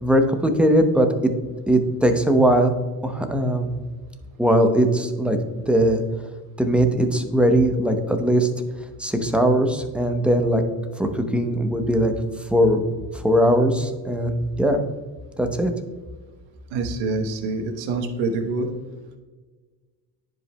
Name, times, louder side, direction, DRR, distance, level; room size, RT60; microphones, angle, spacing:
voice 1, 0.0-1.3 1.7-2.7 3.0-3.7 4.4-5.4 5.7-6.0 6.6-8.5 9.0-10.6 11.0-12.1 12.5-12.8 13.1-14.3 14.6-14.8 15.4-15.7, right 1 dB, 5° right, 5 dB, 0.8 m, -19 dB
voice 2, 16.7-18.7, right 3 dB, 80° right, 5 dB, 1.0 m, -26 dB
10.5 x 5.1 x 2.2 m, 1.4 s
supercardioid pair, 90°, 44 cm